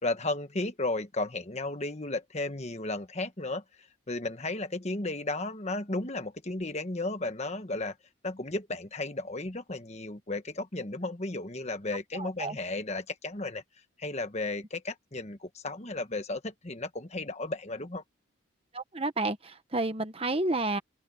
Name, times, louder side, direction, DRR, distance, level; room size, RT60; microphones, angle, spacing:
voice 1, 0.0-3.6 4.1-8.0 8.2-13.6 14.0-18.0, left 2 dB, 30° left, 1.3 m, -34 dB
voice 2, 12.2-12.6 18.7-20.8, right 2 dB, 25° right, 1.1 m, -30 dB
open air
head